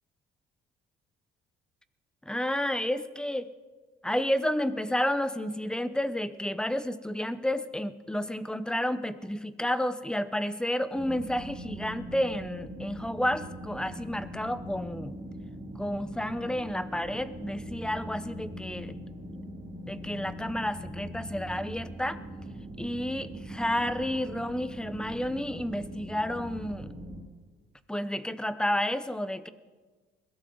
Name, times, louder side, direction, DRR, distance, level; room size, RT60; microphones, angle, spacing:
voice 1, 2.3-3.5 4.0-15.1 15.8-19.0 19.9-22.2 22.8-26.9 27.9-29.5, left 1 dB, 5° left, 13 dB, 0.8 m, -31 dB
sound 1, 10.9-27.2, equal, 35° right, 5.1 m, -41 dB
22.0 x 16.5 x 3.9 m, 1.4 s
cardioid pair, 110°, 19 cm